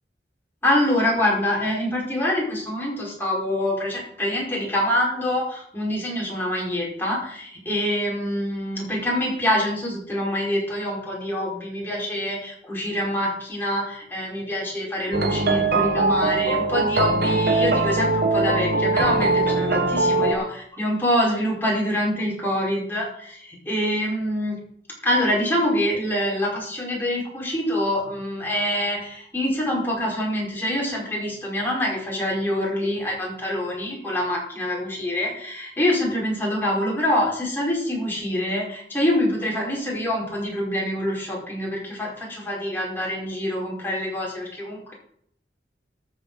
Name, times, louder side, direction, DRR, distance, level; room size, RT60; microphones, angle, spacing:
voice 1, 0.6-24.6 25.0-44.9, left 1 dB, 10° left, -4 dB, 5.1 m, -25 dB
sound 1, 15.1-20.3, right 3 dB, 60° right, 1.4 m, -21 dB
13.5 x 6.3 x 6.3 m, 0.66 s
head